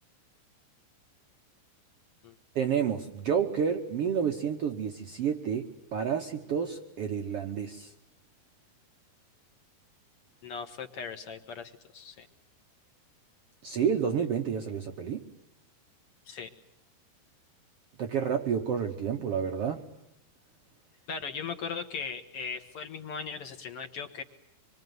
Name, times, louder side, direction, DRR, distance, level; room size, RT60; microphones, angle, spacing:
voice 1, 2.5-7.9 13.6-15.2 18.0-19.8, right 7 dB, 85° right, 4 dB, 1.3 m, -30 dB
voice 2, 10.4-12.3 16.3-16.5 21.1-24.2, left 5 dB, 65° left, 7 dB, 1.4 m, -38 dB
26.0 x 24.0 x 9.4 m, 0.79 s
omnidirectional pair, 4.6 m